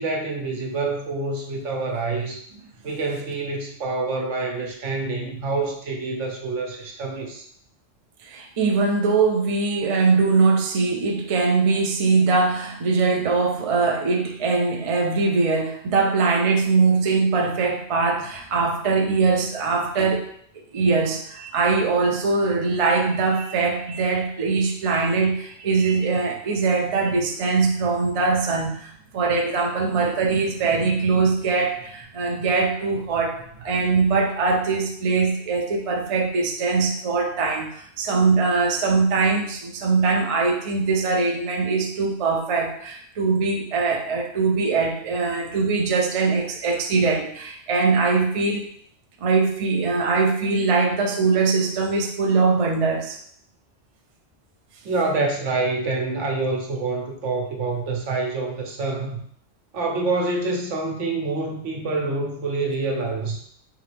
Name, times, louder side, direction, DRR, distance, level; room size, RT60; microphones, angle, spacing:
voice 1, 0.0-2.4 2.8-7.5 54.8-59.2 59.7-63.4, right 3 dB, 80° right, 1 dB, 1.1 m, -26 dB
voice 2, 8.2-20.3 20.5-48.7 49.2-53.2, right 4 dB, 40° right, 2 dB, 0.5 m, -22 dB
3.9 x 3.5 x 3.3 m, 0.65 s
omnidirectional pair, 1.2 m